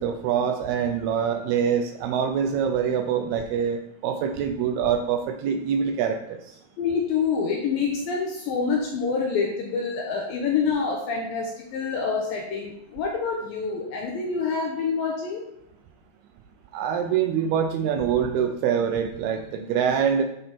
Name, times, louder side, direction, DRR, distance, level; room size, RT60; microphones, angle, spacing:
voice 1, 0.0-6.4 16.7-20.2, right 7 dB, 80° right, 5 dB, 2.4 m, -25 dB
voice 2, 6.8-15.4, left 5 dB, 75° left, 0 dB, 2.2 m, -27 dB
9.8 x 4.1 x 4.4 m, 0.81 s
omnidirectional pair, 4.9 m